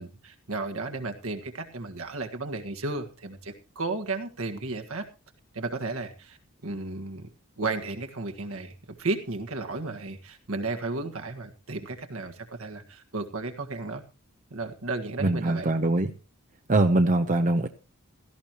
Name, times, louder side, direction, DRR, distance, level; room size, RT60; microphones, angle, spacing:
voice 1, 0.0-5.0 5.5-6.4 6.6-7.3 7.6-14.0 14.5-15.7, right 3 dB, 75° right, 5 dB, 1.7 m, -34 dB
voice 2, 15.2-16.1 16.7-17.7, right 2 dB, 35° right, 7 dB, 0.7 m, -22 dB
17.0 x 14.0 x 3.0 m, 0.30 s
head